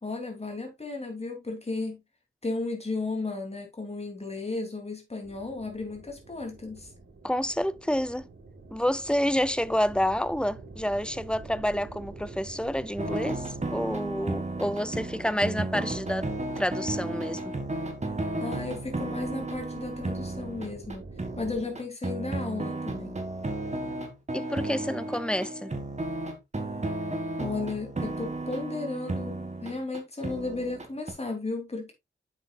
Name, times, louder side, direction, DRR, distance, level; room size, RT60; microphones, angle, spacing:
voice 1, 0.0-2.0 2.4-6.9 18.4-21.0 21.4-23.2 27.4-31.9, left 3 dB, 30° left, 3.0 m, -34 dB
sound 1, 5.2-21.6, right 3 dB, 70° right, 4.3 m, -47 dB
voice 2, 7.2-8.3 8.7-16.3 16.6-17.5 24.3-25.7, equal, 5° left, 0.5 m, -29 dB
sound 2, 13.0-31.1, right 2 dB, 35° right, 2.0 m, -33 dB
9.5 x 7.2 x 2.4 m
wide cardioid pair, 115°, 20 cm